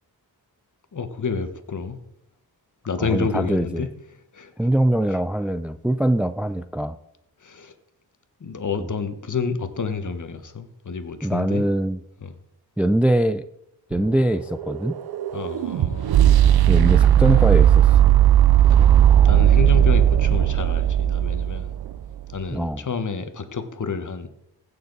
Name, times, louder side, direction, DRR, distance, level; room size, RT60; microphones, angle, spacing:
voice 1, 0.9-2.0 2.9-3.9 4.3-4.5 5.1-5.2 7.4-7.7 8.4-11.6 12.2-12.3 15.3-16.3 19.2-21.7 22.3-24.3, left 5 dB, 50° left, 9 dB, 1.3 m, -29 dB
voice 2, 3.0-3.9 4.6-7.0 11.2-12.0 12.8-13.5 13.9-15.0 16.7-18.0 22.5-22.8, right 1 dB, 5° right, 11 dB, 0.4 m, -22 dB
sound 1, 13.9-22.0, right 11 dB, 65° right, 0.6 m, -17 dB
15.5 x 6.8 x 4.0 m, 0.75 s
wide cardioid pair, 90°, 40 cm